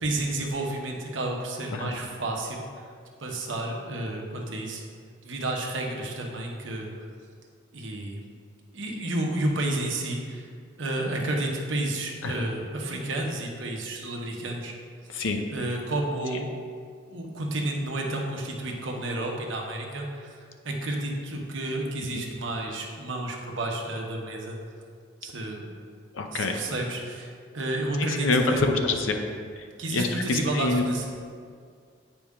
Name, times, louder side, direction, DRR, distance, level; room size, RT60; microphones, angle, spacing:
voice 1, 0.0-2.9 3.2-4.8 5.2-7.1 7.7-8.2 8.7-10.5 10.8-14.7 15.5-16.5 17.1-24.6 25.2-25.7 26.3-28.6 29.8-31.1, right 1 dB, 80° right, 0 dB, 1.1 m, -31 dB
voice 2, 26.1-26.6 28.2-29.2 29.9-30.8, left 3 dB, 90° left, 4 dB, 0.7 m, -25 dB
8.5 x 5.0 x 3.7 m, 2.1 s
head